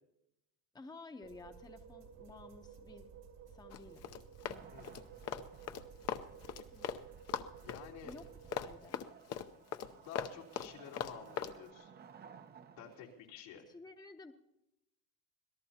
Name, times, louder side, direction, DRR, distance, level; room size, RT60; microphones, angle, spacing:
voice 1, 0.7-3.1 3.4-4.1 6.7-6.9 8.0-8.2 8.6-9.0 13.7-14.3, left 3 dB, 10° left, 6 dB, 0.8 m, -53 dB
sound 1, 1.2-8.8, right 8 dB, 70° right, 2.1 m, -54 dB
Run, 3.7-7.0 7.3-11.5, left 8 dB, 45° left, 0.7 m, -40 dB
Wood, 4.4-13.3, right 7 dB, 30° right, 0.6 m, -59 dB
voice 2, 7.6-8.1 9.8-11.9 12.8-13.6, left 8 dB, 90° left, -2 dB, 3.4 m, -51 dB
25.5 x 18.0 x 2.9 m, 0.86 s
cardioid pair, 130°, 35 cm